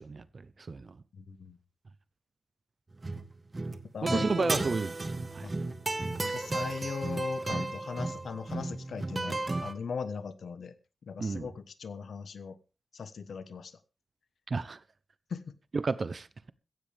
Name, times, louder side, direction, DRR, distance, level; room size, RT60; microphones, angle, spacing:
voice 1, 0.0-1.0 4.0-5.5 9.3-9.4 11.2-11.5 14.5-14.8 15.7-16.5, right 4 dB, 45° right, 0.8 m, -32 dB
voice 2, 1.1-1.6 3.9-4.6 5.4-5.5 6.2-10.8 11.0-12.6 12.9-13.8 15.3-15.5, left 5 dB, 85° left, 1.2 m, -39 dB
sound 1, 2.9-3.3 3.5-9.7, right 2 dB, 30° right, 1.5 m, -34 dB
15.5 x 15.5 x 3.5 m
wide cardioid pair, 120°, 0 cm